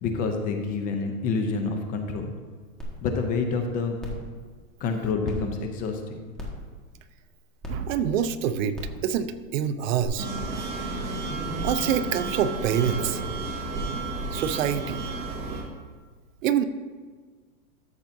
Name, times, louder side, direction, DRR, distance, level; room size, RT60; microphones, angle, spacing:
voice 1, 0.0-2.3 3.0-4.0 4.8-6.2, left 4 dB, 20° left, 4 dB, 0.5 m, -28 dB
sound 1, 2.8-2.9 3.4-3.5 4.0-4.2 5.2-5.3 6.3-6.6 7.6-7.7 8.7-9.0 10.0-10.1, left 2 dB, ahead, 1.4 m, -36 dB
voice 2, 7.7-8.8 9.0-10.3 11.6-13.2 14.3-15.0 16.4-16.7, right 9 dB, 60° right, 12 dB, 0.7 m, -26 dB
sound 2, 10.2-15.6, right 2 dB, 25° right, 1.8 m, -32 dB
13.5 x 7.0 x 2.6 m, 1.5 s
supercardioid pair, 145°, 44 cm